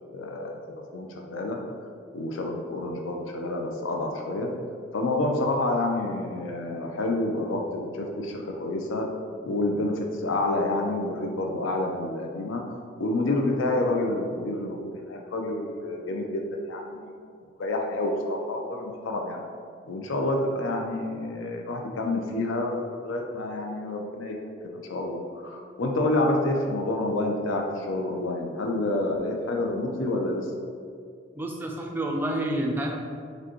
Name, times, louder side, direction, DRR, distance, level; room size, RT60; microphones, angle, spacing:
voice 1, 0.1-0.6 0.9-1.6 2.1-4.5 4.9-9.0 9.4-17.1 17.6-19.4 19.9-24.3 24.7-30.5, left 2 dB, 90° left, 1 dB, 0.5 m, -28 dB
voice 2, 31.3-32.9, right 1 dB, 10° right, 0 dB, 0.3 m, -28 dB
4.8 x 2.2 x 3.0 m, 2.2 s
head